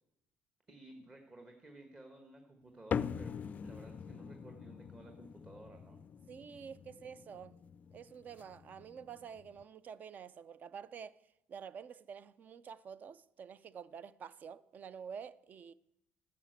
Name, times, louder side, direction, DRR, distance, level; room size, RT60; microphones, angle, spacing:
voice 1, 0.7-6.0, right 2 dB, 25° right, 1.4 m, -55 dB
sound 1, 2.9-9.6, left 7 dB, 40° left, 0.3 m, -43 dB
voice 2, 6.3-7.6 7.9-11.2 11.5-15.7, right 7 dB, 45° right, 0.4 m, -49 dB
11.0 x 6.6 x 7.9 m
cardioid pair, 105°, 4 cm